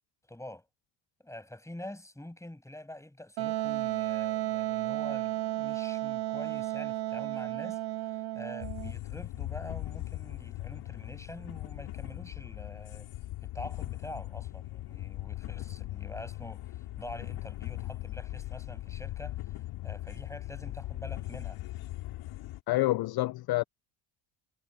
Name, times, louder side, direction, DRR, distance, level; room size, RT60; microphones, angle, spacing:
voice 1, 0.3-0.6 1.2-13.1 13.4-19.6 19.8-21.6, left 1 dB, 5° left, 6.5 m, -46 dB
Wind instrument woodwind instrument, 3.4-8.9, right 16 dB, 75° right, 3.5 m, -33 dB
sound 1, 8.6-22.6, left 16 dB, 75° left, 3.0 m, -39 dB
voice 2, 22.7-23.6, left 18 dB, 50° left, 0.5 m, -27 dB
cardioid pair, 95°, 48 cm